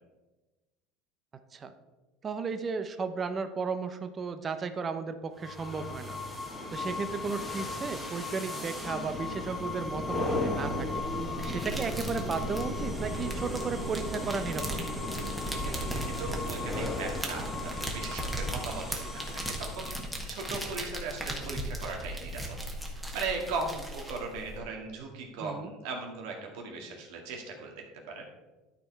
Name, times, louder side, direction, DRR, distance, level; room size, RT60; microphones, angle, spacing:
voice 1, 2.2-6.2 6.7-11.0 11.4-14.8 25.4-25.7, right 5 dB, 25° right, 9 dB, 0.6 m, -34 dB
sound 1, 5.4-20.1, left 2 dB, 10° left, 1.6 m, -36 dB
sound 2, 11.0-24.6, right 1 dB, 5° right, 1.4 m, -38 dB
voice 2, 15.6-19.9 20.3-22.4 22.9-27.7 28.1-28.3, right 4 dB, 75° right, 1 dB, 2.0 m, -38 dB
12.0 x 4.5 x 4.6 m, 1.1 s
supercardioid pair, 130°, 0 cm